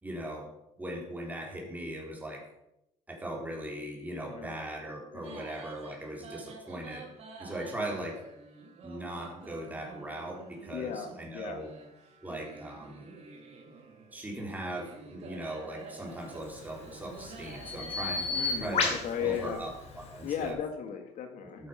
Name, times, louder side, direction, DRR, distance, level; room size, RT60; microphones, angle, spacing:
voice 1, 0.0-0.5 0.8-2.4 3.1-7.1 7.4-8.2 8.8-11.7 12.2-13.1 14.1-18.3 18.6-20.6 21.6-21.7, right 1 dB, 10° right, 0 dB, 3.9 m, -39 dB
sound 1, 5.2-19.5, right 4 dB, 50° right, 3.4 m, -49 dB
voice 2, 10.7-11.6 18.3-19.6 20.2-21.6, left 8 dB, 65° left, 6 dB, 2.1 m, -36 dB
Bird vocalization bird call bird song, 16.3-20.5, left 4 dB, 50° left, 3.3 m, -35 dB
12.5 x 9.7 x 5.9 m, 0.83 s
cardioid pair, 135°, 14 cm